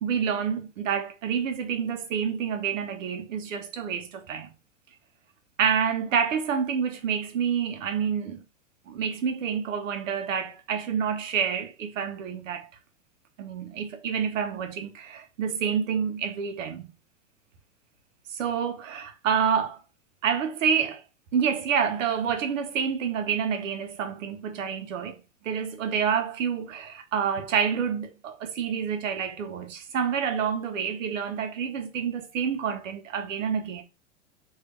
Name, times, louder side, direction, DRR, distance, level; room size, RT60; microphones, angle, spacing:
voice 1, 0.0-4.5 5.6-8.4 8.9-12.7 13.4-16.9 18.3-19.8 20.2-21.0 21.3-33.8, right 7 dB, 80° right, 1.0 m, -28 dB
3.4 x 2.7 x 3.1 m
hypercardioid pair, 115°, 38 cm